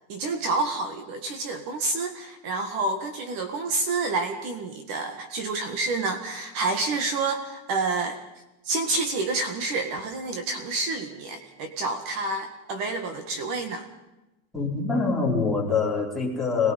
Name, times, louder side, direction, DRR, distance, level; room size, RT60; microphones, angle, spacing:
voice 1, 0.1-8.2 8.6-13.9, right 3 dB, 45° right, 7 dB, 2.1 m, -28 dB
voice 2, 14.5-16.7, left 4 dB, ahead, 0 dB, 3.8 m, -25 dB
26.5 x 20.0 x 5.5 m, 0.98 s
cardioid pair, 175°, 46 cm